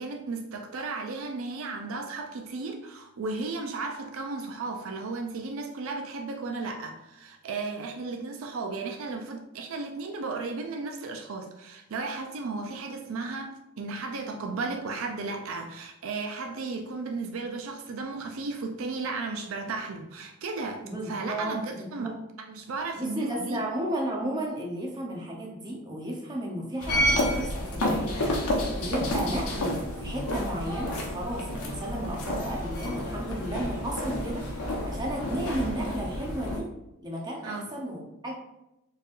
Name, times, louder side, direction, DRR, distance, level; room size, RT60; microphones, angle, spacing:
voice 1, 0.0-22.1 22.5-23.6 37.4-37.7, right 3 dB, 65° right, 4 dB, 0.4 m, -34 dB
voice 2, 20.8-22.2 22.9-34.4 34.8-36.6 37.0-38.4, right 1 dB, 20° right, -2 dB, 0.7 m, -34 dB
sound 1, 26.8-36.6, left 1 dB, 90° left, 0.9 m, -30 dB
4.4 x 3.3 x 2.5 m, 0.92 s
head